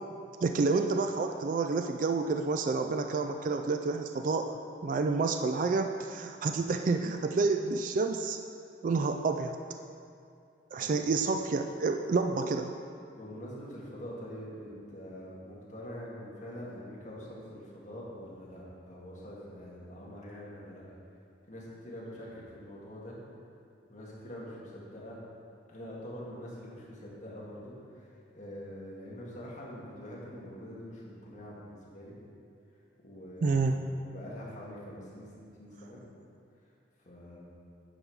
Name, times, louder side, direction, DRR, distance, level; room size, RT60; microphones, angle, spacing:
voice 1, 0.4-4.6 4.8-8.4 8.8-9.6 10.7-12.7 33.4-33.8, right 4 dB, 45° right, 5 dB, 0.3 m, -29 dB
voice 2, 10.8-11.2 13.1-20.9 21.5-23.2 23.9-25.2 25.7-32.2 33.0-36.0 37.0-37.4, equal, 40° left, -6 dB, 1.8 m, -45 dB
8.8 x 5.4 x 4.7 m, 2.4 s
head